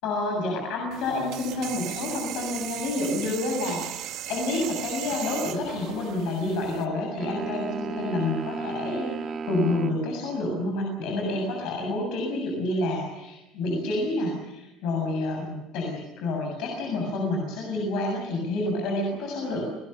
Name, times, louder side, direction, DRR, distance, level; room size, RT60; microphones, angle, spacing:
voice 1, 0.0-19.6, left 2 dB, 70° left, 0 dB, 7.1 m, -29 dB
sound 1, 0.9-6.8, right 13 dB, 65° right, 1.6 m, -37 dB
sound 2, 7.2-10.0, right 5 dB, 35° right, 1.7 m, -33 dB
30.0 x 19.5 x 6.8 m, 0.97 s
cardioid pair, 120°, 0 cm